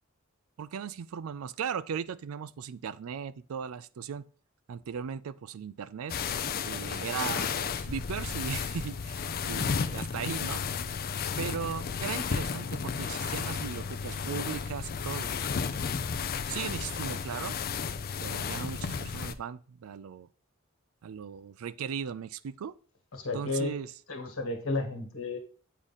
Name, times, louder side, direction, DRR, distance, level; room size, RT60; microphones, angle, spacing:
voice 1, 0.6-4.2 4.7-6.2 6.6-10.6 11.4-15.3 16.5-17.6 18.2-20.3 21.0-22.7 23.3-23.9, right 7 dB, 75° right, 0.4 m, -37 dB
sound 1, 6.1-19.3, left 6 dB, 45° left, 0.4 m, -33 dB
voice 2, 23.1-23.8 24.1-25.4, left 2 dB, 80° left, 1.5 m, -32 dB
8.1 x 3.7 x 4.0 m
head